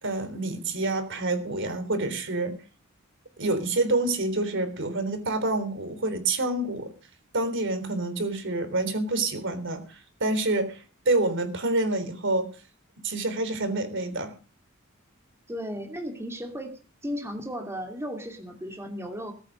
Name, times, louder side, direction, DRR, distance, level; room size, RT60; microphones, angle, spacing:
voice 1, 0.0-2.6 3.4-6.9 7.3-12.5 13.0-14.3, right 2 dB, 60° right, 10 dB, 3.6 m, -27 dB
voice 2, 15.5-19.3, equal, 15° right, 3 dB, 2.6 m, -35 dB
20.0 x 9.1 x 6.5 m, 0.36 s
head